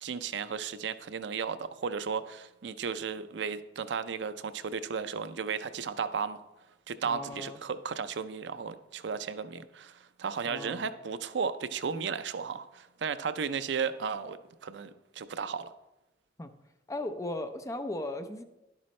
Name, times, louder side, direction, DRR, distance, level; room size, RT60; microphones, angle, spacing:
voice 1, 0.0-6.4 6.9-14.4 14.6-15.7, right 6 dB, 70° right, 12 dB, 0.4 m, -34 dB
voice 2, 7.0-7.6 10.5-10.9 16.4-16.5 16.9-18.4, left 1 dB, 15° left, 7 dB, 0.5 m, -37 dB
11.0 x 8.4 x 3.2 m, 0.98 s
head